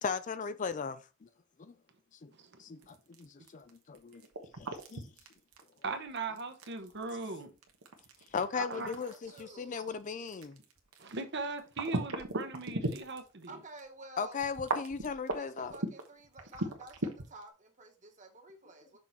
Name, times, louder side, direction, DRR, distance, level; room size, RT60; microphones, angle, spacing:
voice 1, 0.0-1.3 1.6-1.7 2.2-2.3 2.6-4.3 4.6-5.1 8.3-10.6 14.2-15.7, left 5 dB, 35° left, 0.4 m, -37 dB
voice 2, 2.3-2.6 5.8-7.5 8.5-8.9 11.0-13.6, right 3 dB, 55° right, 1.0 m, -39 dB
sound 1, 2.8-13.5 13.8-13.9 14.4-17.4, right 2 dB, 85° right, 1.3 m, -37 dB
voice 3, 8.7-9.8 13.5-14.5 15.3-19.0, right 2 dB, 35° right, 1.5 m, -52 dB
6.2 x 4.2 x 4.6 m
head